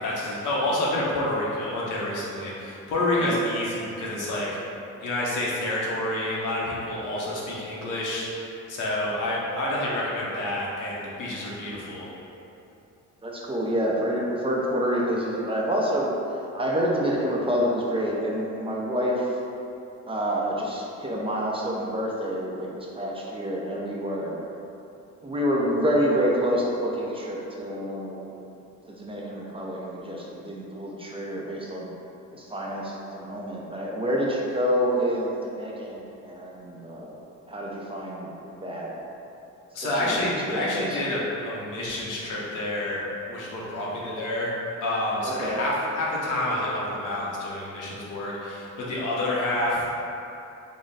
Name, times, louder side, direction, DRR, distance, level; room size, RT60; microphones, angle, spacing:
voice 1, 0.0-4.6 5.0-12.1 39.7-43.0 43.3-44.5 44.8-49.9, left 1 dB, 85° left, -6 dB, 0.9 m, -28 dB
voice 2, 13.2-16.1 16.5-19.3 20.1-24.3 25.2-28.2 28.9-31.9 32.3-37.2 37.5-38.9 39.8-40.2 40.5-41.0 45.3-45.6, equal, 20° right, -4 dB, 0.5 m, -28 dB
3.7 x 2.1 x 3.9 m, 2.8 s
cardioid pair, 90°, 30 cm